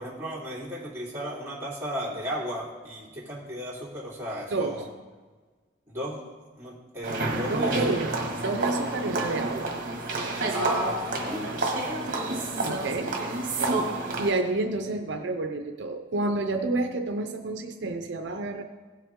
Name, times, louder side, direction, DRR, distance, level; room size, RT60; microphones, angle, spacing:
voice 1, 0.0-4.9 5.9-6.2 6.6-8.0 10.5-12.0 12.3-12.8, equal, 15° right, -7 dB, 2.7 m, -35 dB
voice 2, 4.5-4.9 7.5-9.8 12.6-13.2 13.6-13.8 14.2-18.6, right 2 dB, 75° right, 5 dB, 0.6 m, -29 dB
sound 1, 7.0-14.3, right 2 dB, 50° right, 1.6 m, -29 dB
16.5 x 5.7 x 3.7 m, 1.4 s
head